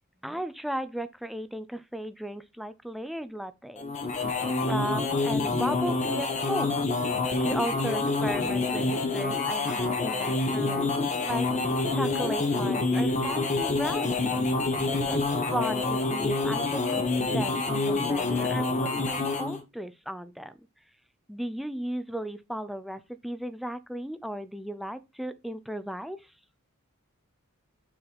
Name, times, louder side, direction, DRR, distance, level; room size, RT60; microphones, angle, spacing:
voice 1, 0.2-4.4 4.7-6.8 7.4-14.4 15.1-20.6 21.3-26.3, equal, ahead, 0.4 m, -35 dB
sound 1, 3.8-19.6, left 3 dB, 30° left, 1.2 m, -27 dB
6.2 x 4.0 x 4.6 m
head